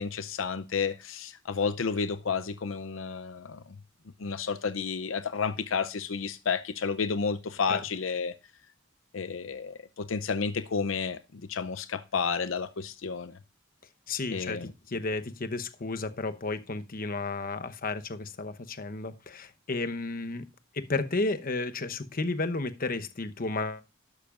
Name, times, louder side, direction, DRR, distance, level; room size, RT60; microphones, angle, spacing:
voice 1, 0.0-3.6 4.2-8.3 9.1-13.4 14.3-14.7, left 5 dB, 75° left, 0.6 m, -31 dB
voice 2, 14.1-20.4 20.7-23.8, left 3 dB, 45° left, 1.0 m, -32 dB
12.0 x 11.5 x 2.5 m
head